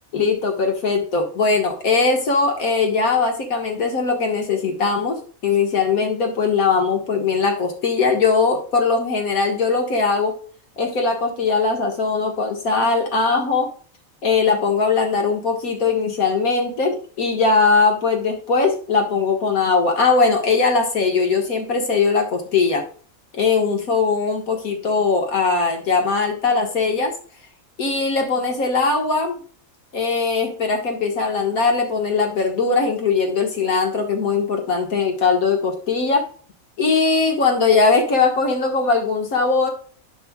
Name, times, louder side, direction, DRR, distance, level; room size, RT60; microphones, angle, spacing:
voice 1, 0.1-10.4 10.8-13.7 14.2-22.8 23.3-27.1 27.8-29.4 29.9-36.3 36.8-39.7, left 4 dB, 90° left, 3 dB, 2.0 m, -20 dB
10.5 x 5.5 x 2.3 m, 0.43 s
omnidirectional pair, 1.5 m